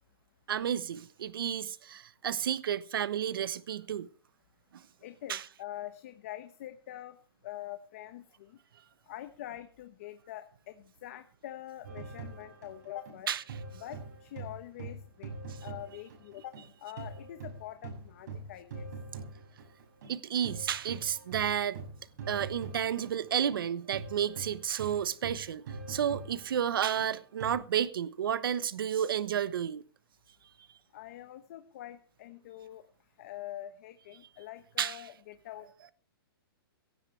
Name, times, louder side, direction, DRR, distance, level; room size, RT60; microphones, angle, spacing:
voice 1, 0.5-4.1 5.3-5.4 13.3-13.4 20.1-21.8 22.3-29.8 34.8-35.0, right 9 dB, 65° right, 1.1 m, -31 dB
voice 2, 5.0-7.2 7.4-8.6 9.1-13.3 13.7-18.9 30.9-32.8 33.2-35.7, left 13 dB, 35° left, 1.0 m, -45 dB
sound 1, 11.8-16.7 17.0-27.5, right 4 dB, 45° right, 7.0 m, -44 dB
17.0 x 15.0 x 3.3 m
hypercardioid pair, 170°, 13 cm